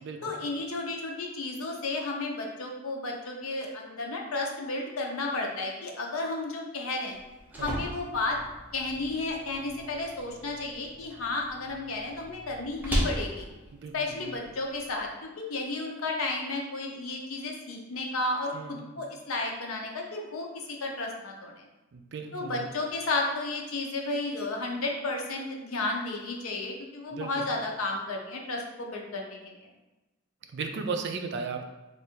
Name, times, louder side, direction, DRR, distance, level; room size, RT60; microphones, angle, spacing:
voice 1, 0.2-7.2 7.6-8.4 8.7-13.5 13.9-21.7 22.3-29.7, left 2 dB, 85° left, 1 dB, 0.7 m, -33 dB
sound 1, 7.1-15.1, equal, 10° right, 0.6 m, -37 dB
voice 2, 7.6-7.9 13.7-13.9 18.5-18.8 21.9-22.7 27.1-27.5 30.5-31.6, right 4 dB, 55° right, 5 dB, 0.4 m, -35 dB
3.3 x 2.5 x 4.4 m, 1.1 s
head